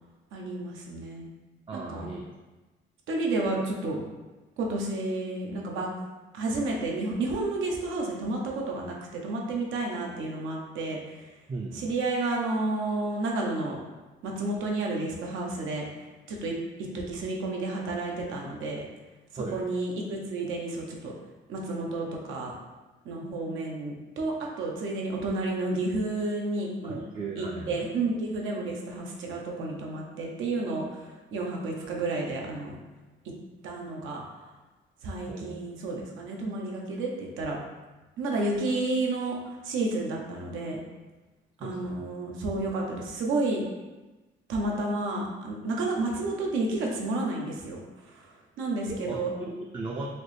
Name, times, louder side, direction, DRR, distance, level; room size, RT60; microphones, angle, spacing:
voice 1, 0.3-1.2 1.7-2.1 3.1-4.0 4.6-5.9 6.3-11.3 11.7-13.8 14.2-15.9 16.3-16.5 16.9-18.9 19.3-21.1 21.5-22.5 23.0-27.0 27.4-32.8 33.6-34.2 35.0-37.6 38.2-40.8 41.6-43.6 44.5-47.8 48.1-49.3, right 2 dB, 85° right, -1 dB, 0.7 m, -31 dB
voice 2, 1.7-2.2 11.5-11.8 19.4-19.6 26.8-27.7 35.3-35.5 41.6-42.0 48.9-50.1, right 3 dB, 25° right, -2 dB, 0.4 m, -37 dB
4.2 x 2.0 x 3.2 m, 1.2 s
cardioid pair, 90°, 20 cm